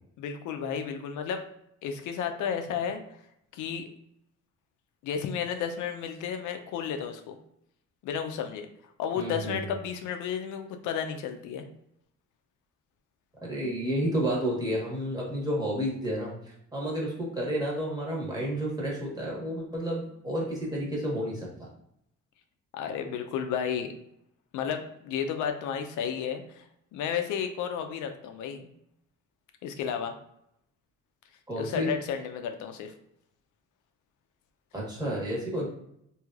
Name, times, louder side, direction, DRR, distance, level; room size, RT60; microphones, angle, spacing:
voice 1, 0.2-1.4 1.8-3.0 3.5-3.9 5.0-7.4 8.0-8.7 9.0-11.6 22.7-23.9 24.5-26.7 26.9-28.7 29.6-30.1 31.6-32.9, left 7 dB, 80° left, 6 dB, 0.4 m, -32 dB
voice 2, 9.1-9.8 13.4-16.3 16.7-21.7 31.5-31.9 34.7-35.6, equal, 15° right, -4 dB, 1.3 m, -31 dB
3.1 x 2.7 x 2.3 m, 0.76 s
cardioid pair, 90°, 30 cm